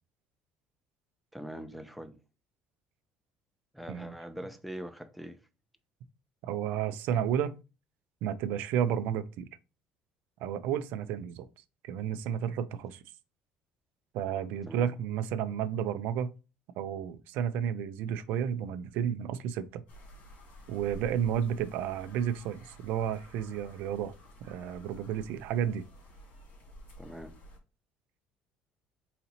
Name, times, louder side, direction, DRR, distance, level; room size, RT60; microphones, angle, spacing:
voice 1, 1.3-2.2 3.7-5.4 14.7-14.9 27.0-27.3, equal, ahead, 0.5 m, -42 dB
voice 2, 6.4-7.6 8.2-9.5 10.4-11.5 11.8-13.0 14.1-16.3 16.8-19.8 20.7-24.1 24.4-25.8, right 9 dB, 75° right, 0.4 m, -32 dB
sound 1, 19.9-27.6, equal, 65° left, 2.5 m, -51 dB
4.0 x 2.8 x 4.1 m
cardioid pair, 120°, 3 cm